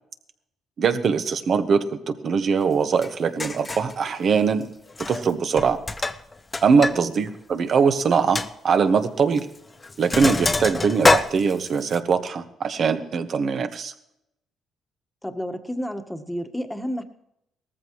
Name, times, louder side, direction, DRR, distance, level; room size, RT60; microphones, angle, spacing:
voice 1, 0.8-4.7 5.1-5.8 6.6-9.5 10.0-13.9, right 5 dB, 55° right, 8 dB, 1.4 m, -22 dB
Sink (filling or washing), 3.0-3.1 3.4-3.9 4.9-5.3 5.6-7.0 7.3-7.4 7.8-7.9 8.4-8.5 9.4-9.6 9.8-12.0, left 3 dB, 25° left, 0.8 m, -24 dB
voice 2, 15.2-17.0, equal, 5° left, 6 dB, 1.5 m, -31 dB
19.0 x 14.5 x 3.2 m, 0.80 s
cardioid pair, 90°, 0 cm